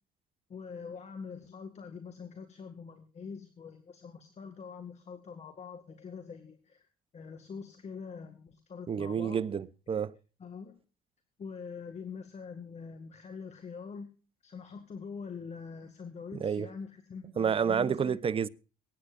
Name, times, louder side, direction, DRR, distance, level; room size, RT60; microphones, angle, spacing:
voice 1, 0.5-6.9 7.1-9.4 10.4-10.7 11.4-14.1 14.4-18.2, left 5 dB, 40° left, 2.0 m, -44 dB
voice 2, 8.9-10.1 16.4-16.7 17.4-18.5, right 7 dB, 35° right, 0.7 m, -29 dB
23.5 x 9.7 x 2.5 m
cardioid pair, 110°, 17 cm